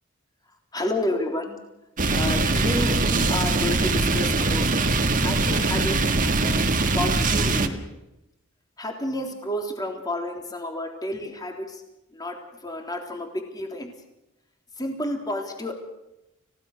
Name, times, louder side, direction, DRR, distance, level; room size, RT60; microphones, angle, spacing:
voice 1, 0.7-1.6 2.1-4.9 5.2-6.6 7.0-7.8 8.8-11.8 12.1-13.9 14.8-15.7, left 1 dB, 20° left, 3 dB, 3.7 m, -30 dB
sound 1, 2.0-7.7, right 3 dB, 40° right, 1.8 m, -22 dB
30.0 x 17.0 x 6.7 m, 0.91 s
head